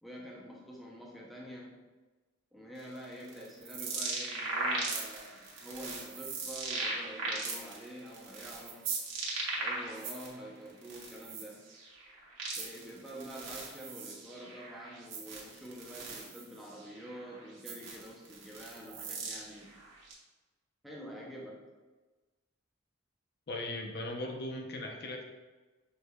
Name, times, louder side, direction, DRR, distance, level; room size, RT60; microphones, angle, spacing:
voice 1, 0.0-1.8 2.5-8.9 9.6-11.6 12.6-19.8 20.8-21.7, equal, ahead, -3 dB, 0.5 m, -47 dB
sound 1, 2.8-10.3 10.7-20.1, right 3 dB, 70° right, 1.0 m, -38 dB
voice 2, 23.5-25.2, left 1 dB, 50° left, 2 dB, 0.6 m, -38 dB
6.3 x 3.3 x 2.2 m, 1.2 s
head